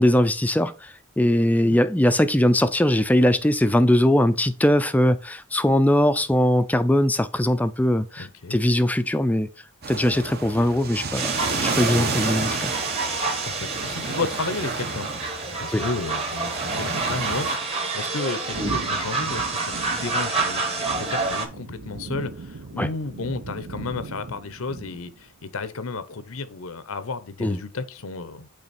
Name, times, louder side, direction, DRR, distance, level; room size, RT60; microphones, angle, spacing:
voice 1, 0.0-9.5 9.9-12.7 15.7-15.8 18.6-18.7 22.8-22.9 27.4-27.6, left 1 dB, 5° left, 0.4 m, -21 dB
voice 2, 8.2-8.6 13.4-15.1 15.4-28.5, left 3 dB, 80° left, 0.8 m, -33 dB
sound 1, 9.8-17.6, right 3 dB, 45° right, 1.0 m, -31 dB
sound 2, 11.1-21.5, right 3 dB, 30° right, 1.3 m, -28 dB
sound 3, 18.5-25.3, right 3 dB, 75° right, 0.8 m, -38 dB
8.7 x 3.4 x 4.2 m
head